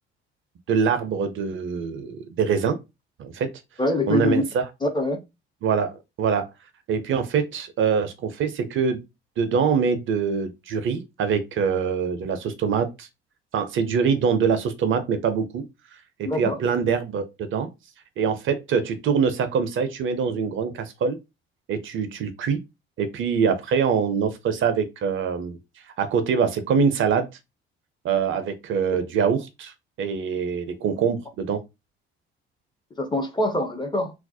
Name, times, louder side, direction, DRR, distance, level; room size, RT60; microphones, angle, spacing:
voice 1, 0.7-2.8 3.2-3.5 4.1-4.6 5.6-6.5 6.9-9.0 9.4-13.1 13.5-15.6 16.2-17.7 18.2-21.2 21.7-22.6 23.0-25.6 26.0-27.3 28.0-29.7 30.0-31.6, right 6 dB, 40° right, 0.4 m, -24 dB
voice 2, 3.8-4.5 4.8-5.2 16.2-16.6 33.0-34.1, left 2 dB, 15° left, 0.5 m, -24 dB
2.3 x 2.0 x 2.6 m
figure-of-eight pair, 50°, 31 cm